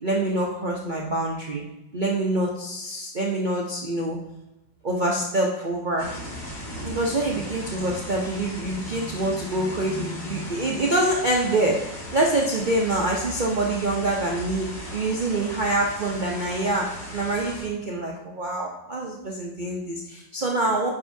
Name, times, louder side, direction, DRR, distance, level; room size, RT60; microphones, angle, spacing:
voice 1, 0.0-1.6 1.9-4.2 4.8-6.2 6.8-20.9, right 2 dB, 80° right, -3 dB, 0.4 m, -26 dB
sound 1, 6.0-17.7, left 1 dB, 35° left, 2.0 m, -37 dB
9.6 x 5.4 x 2.7 m, 0.91 s
omnidirectional pair, 2.2 m